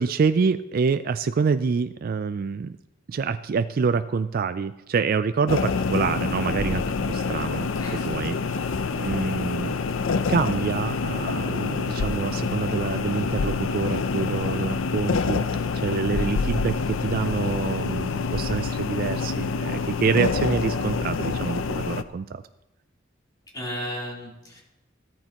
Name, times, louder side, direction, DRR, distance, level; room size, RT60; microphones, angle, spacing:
voice 1, 0.0-2.8 3.1-9.7 10.3-22.4, right 5 dB, 50° right, 11 dB, 0.3 m, -27 dB
sound 1, 5.5-22.0, left 4 dB, 80° left, 0.6 m, -27 dB
voice 2, 7.8-8.2 23.5-24.6, equal, 20° left, -4 dB, 3.5 m, -34 dB
14.5 x 13.5 x 3.0 m, 0.94 s
head